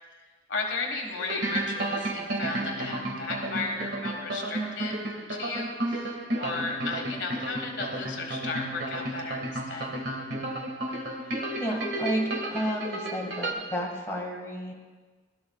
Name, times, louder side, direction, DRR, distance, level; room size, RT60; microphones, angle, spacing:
voice 1, 0.5-5.0 5.3-9.9, left 3 dB, 80° left, 1 dB, 1.6 m, -34 dB
sound 1, 1.2-13.5, right 1 dB, 70° right, 1.8 m, -32 dB
voice 2, 10.9-12.2 12.5-14.7, equal, 15° left, -2 dB, 1.9 m, -32 dB
17.5 x 12.5 x 2.4 m, 1.4 s
head